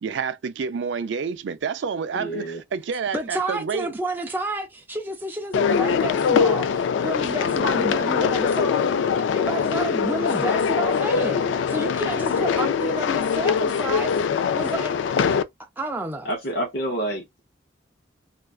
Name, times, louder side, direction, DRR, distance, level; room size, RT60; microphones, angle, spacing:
voice 1, 0.0-3.9, right 6 dB, 80° right, 0.4 m, -29 dB
voice 2, 2.1-2.6 16.2-17.4, right 1 dB, 65° left, 0.7 m, -28 dB
voice 3, 3.1-8.9 9.3-15.4 15.8-16.3, right 1 dB, 10° right, 0.5 m, -30 dB
sound 1, 5.5-15.4, left 6 dB, 85° left, 0.3 m, -22 dB
2.4 x 2.2 x 2.3 m
head